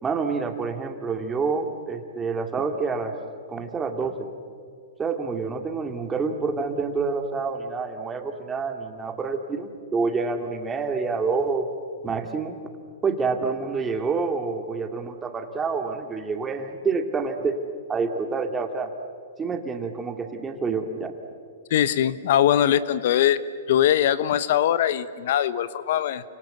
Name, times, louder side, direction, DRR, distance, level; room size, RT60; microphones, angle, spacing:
voice 1, 0.0-3.1 3.5-4.3 5.0-11.7 12.0-12.6 13.0-17.6 17.9-18.9 19.4-21.1, right 4 dB, 15° right, 5 dB, 2.5 m, -27 dB
voice 2, 21.7-23.4 23.7-26.2, left 11 dB, 60° left, 16 dB, 1.0 m, -21 dB
28.5 x 26.0 x 8.0 m, 2.2 s
hypercardioid pair, 130°, 0 cm